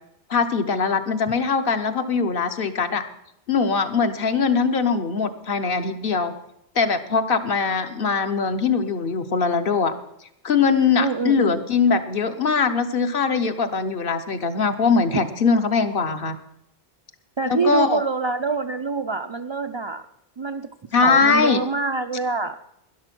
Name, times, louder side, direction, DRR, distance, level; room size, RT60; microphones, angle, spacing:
voice 1, 0.3-3.0 3.5-6.3 6.7-9.9 10.4-16.4 17.5-18.0 20.9-21.6, left 5 dB, 60° left, 8 dB, 1.1 m, -21 dB
voice 2, 11.0-11.6 17.4-20.0 20.4-20.7 21.0-22.6, right 4 dB, 45° right, 8 dB, 0.3 m, -25 dB
12.5 x 10.5 x 6.0 m, 0.79 s
omnidirectional pair, 1.1 m